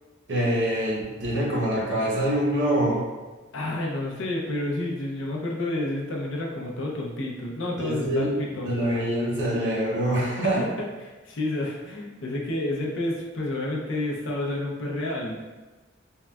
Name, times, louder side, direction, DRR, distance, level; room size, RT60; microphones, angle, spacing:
voice 1, 0.3-3.0 7.8-8.3 8.6-10.6, right 1 dB, 60° right, -4 dB, 0.8 m, -25 dB
voice 2, 3.5-8.9 10.4-15.6, left 1 dB, 70° left, -2 dB, 0.5 m, -30 dB
3.6 x 2.1 x 2.2 m, 1.2 s
head